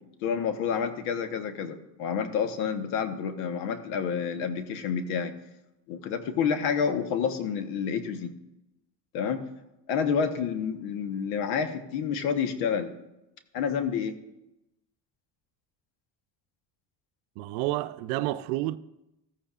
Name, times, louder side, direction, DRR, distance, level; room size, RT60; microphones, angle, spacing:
voice 1, 0.2-5.3 5.9-8.3 9.1-9.4 9.9-12.9 13.5-14.2, left 7 dB, 80° left, 1.3 m, -29 dB
voice 2, 17.4-18.8, right 16 dB, 80° right, 0.7 m, -29 dB
14.5 x 14.0 x 2.5 m
supercardioid pair, 90°, 49 cm